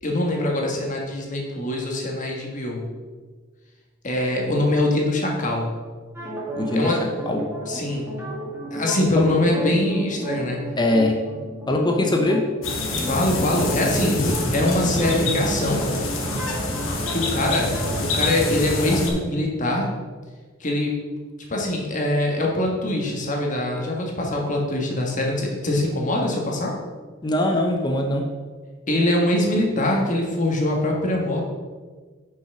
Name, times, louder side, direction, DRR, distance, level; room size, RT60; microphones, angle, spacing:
voice 1, 0.0-2.9 4.0-5.7 6.7-7.0 7.7-8.1 8.7-10.6 13.0-14.2 14.5-15.8 17.1-17.7 18.0-19.9 20.6-21.0 21.5-26.7 28.9-31.4, left 1 dB, 40° left, 0 dB, 1.5 m, -23 dB
sound 1, 6.1-18.0, right 1 dB, 15° right, 2.2 m, -33 dB
voice 2, 6.5-6.9 7.3-7.5 9.2-9.3 10.8-11.2 11.7-12.5 27.2-28.3, left 1 dB, 20° left, 2 dB, 0.7 m, -21 dB
sound 2, 12.6-19.1, left 2 dB, 75° left, 1.6 m, -26 dB
6.1 x 5.7 x 5.7 m, 1.4 s
head